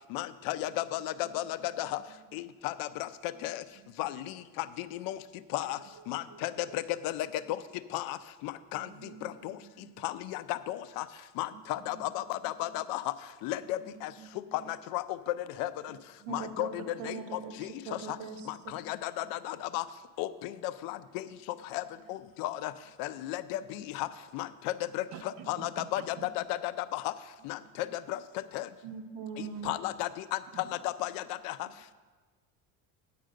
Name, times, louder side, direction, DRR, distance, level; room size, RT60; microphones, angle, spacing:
voice 1, 0.1-2.0 2.3-3.1 3.4-3.6 4.0-5.2 5.5-5.8 6.1-7.6 7.9-8.2 8.4-8.9 9.2-9.5 10.0-11.0 11.4-13.1 13.4-14.1 14.7-15.2 15.6-15.9 16.3-17.7 18.1-18.2 18.7-19.8 20.2-21.3 21.7-21.8 22.1-22.7 23.0-24.1 24.3-27.1 27.4-28.2 28.5-28.7 29.6-30.4 30.8-31.6, left 14 dB, 80° left, 14 dB, 0.5 m, -34 dB
voice 2, 1.2-2.4 3.3-4.1 5.8-6.9 8.7-10.1 11.5-12.8 13.6-14.7 15.9-16.8 19.2-19.3 22.0-22.1 23.1-23.2 23.8-23.9 25.1-26.3 27.4-28.0 28.9-29.0 30.5-30.8 31.6-31.7, right 10 dB, 50° right, 11 dB, 0.5 m, -53 dB
voice 3, 16.2-16.7 17.0-17.5 17.9-18.7 28.8-29.8, right 6 dB, 65° right, 6 dB, 1.2 m, -40 dB
9.4 x 5.1 x 7.7 m, 1.4 s
cardioid pair, 180°, 34 cm